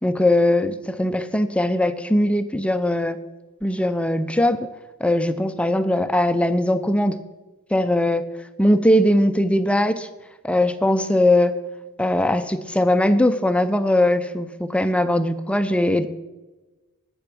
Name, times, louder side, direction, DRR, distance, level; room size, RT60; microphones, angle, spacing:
voice 1, 0.0-3.2 3.6-4.7 5.0-7.2 7.7-8.2 8.6-10.1 10.4-11.5 12.0-16.1, left 1 dB, 5° left, 12 dB, 0.4 m, -20 dB
10.5 x 7.8 x 6.0 m, 1.2 s
head